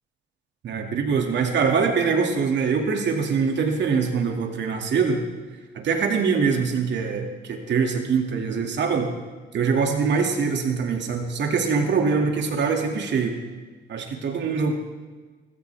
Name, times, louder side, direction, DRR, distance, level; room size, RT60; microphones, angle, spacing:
voice 1, 0.6-5.2 5.7-9.1 9.5-13.3 13.9-14.8, right 5 dB, 65° right, 3 dB, 2.4 m, -23 dB
19.5 x 15.5 x 3.5 m, 1.4 s
cardioid pair, 90°, 20 cm